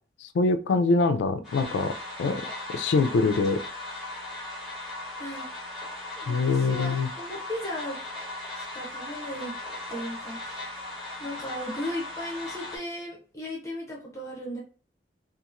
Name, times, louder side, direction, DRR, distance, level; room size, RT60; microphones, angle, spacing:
voice 1, 0.2-3.6 6.3-7.1, left 3 dB, 90° left, 0.3 m, -24 dB
sound 1, 1.4-12.8, left 2 dB, ahead, 1.2 m, -38 dB
voice 2, 6.2-8.0 8.5-9.5 9.9-10.9 11.2-14.6, left 1 dB, 15° left, 0.7 m, -36 dB
2.9 x 2.4 x 2.4 m
head